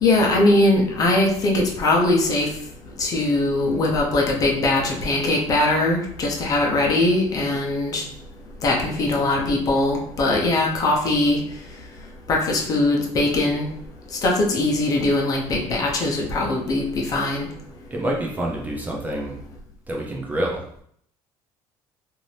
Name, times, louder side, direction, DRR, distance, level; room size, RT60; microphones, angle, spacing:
voice 1, 0.0-2.5 3.0-8.0 8.6-11.4 12.3-13.7 14.2-17.5, left 2 dB, 35° left, -1 dB, 0.7 m, -21 dB
voice 2, 17.9-19.4 19.9-20.8, right 1 dB, 15° right, -2 dB, 0.5 m, -27 dB
2.6 x 2.5 x 3.2 m, 0.66 s
cardioid pair, 135°, 10 cm